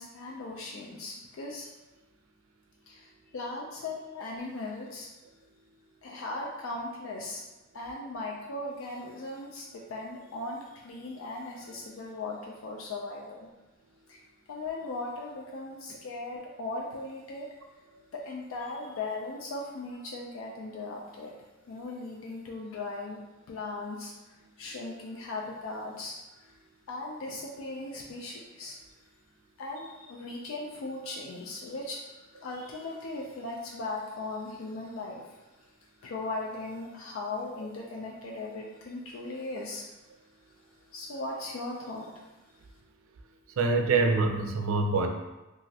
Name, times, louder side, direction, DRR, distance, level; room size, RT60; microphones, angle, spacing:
voice 1, 0.0-1.7 2.9-5.1 6.0-7.4 7.7-13.5 14.1-14.2 14.5-17.5 18.1-21.3 21.7-23.2 23.5-26.5 26.9-28.8 29.6-35.4 36.0-39.8 40.9-42.2, left 2 dB, 70° left, -2 dB, 0.4 m, -38 dB
voice 2, 43.6-45.1, right 3 dB, 80° right, 4 dB, 0.4 m, -25 dB
3.0 x 2.4 x 2.7 m, 1.1 s
head